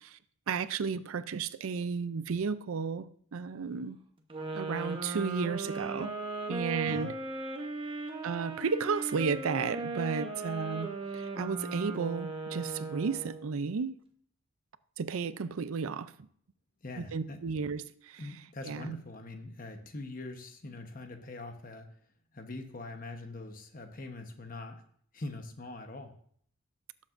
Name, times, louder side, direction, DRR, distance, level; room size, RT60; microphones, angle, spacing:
voice 1, 0.5-3.1 3.3-4.0 4.5-6.1 6.5-7.1 8.2-10.9 11.4-13.9 15.0-16.1 17.1-17.8 18.1-18.2 18.6-18.9, right 5 dB, 80° right, 0.5 m, -33 dB
sound 1, 4.3-13.5, right 3 dB, 25° right, 1.0 m, -37 dB
voice 2, 6.8-7.1 16.8-17.4 18.2-21.9 22.3-24.8 25.1-26.1, left 2 dB, 40° left, 1.0 m, -43 dB
17.5 x 7.4 x 2.5 m
head